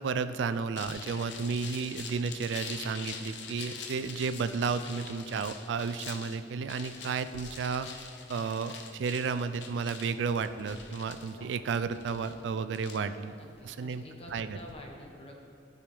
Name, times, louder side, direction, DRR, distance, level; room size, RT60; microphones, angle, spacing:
voice 1, 0.0-7.9 8.3-13.3 13.6-14.0 14.3-14.6, right 5 dB, 70° right, 11 dB, 0.3 m, -32 dB
sound 1, 0.8-14.7, left 5 dB, 70° left, 0.7 m, -45 dB
voice 2, 13.3-15.4, left 1 dB, 30° left, 0 dB, 1.1 m, -48 dB
13.5 x 4.8 x 3.5 m, 2.8 s
head